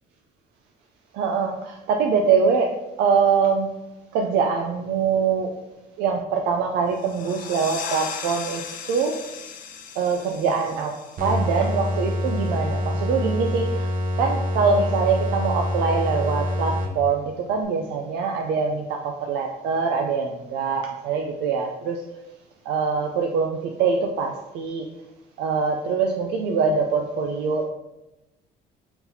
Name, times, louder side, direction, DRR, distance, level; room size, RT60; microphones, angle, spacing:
voice 1, 1.1-3.7 4.1-5.5 6.0-9.2 10.0-13.9 14.2-22.0 22.7-24.9 25.4-27.7, right 5 dB, 90° right, 2 dB, 0.4 m, -23 dB
sound 1, 6.9-12.3, left 6 dB, 55° left, 0.5 m, -37 dB
sound 2, 11.2-17.3, left 1 dB, 55° right, 0.8 m, -26 dB
4.4 x 4.0 x 2.7 m, 0.96 s
cardioid pair, 110°, 17 cm